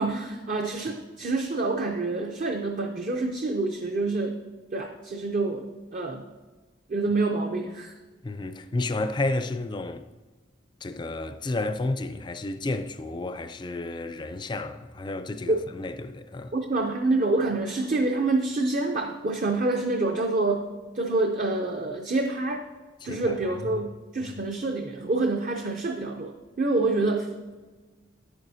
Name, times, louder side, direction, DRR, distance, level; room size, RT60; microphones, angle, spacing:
voice 1, 0.0-4.4 4.7-5.7 5.9-6.2 6.9-7.9 15.5-15.6 16.5-20.6 20.9-22.6 23.0-27.5, right 2 dB, 45° right, 0.6 m, -27 dB
voice 2, 8.2-10.0 10.8-16.5 23.0-23.3 23.7-23.9, left 2 dB, 25° left, 0.4 m, -31 dB
10.5 x 8.9 x 2.7 m
head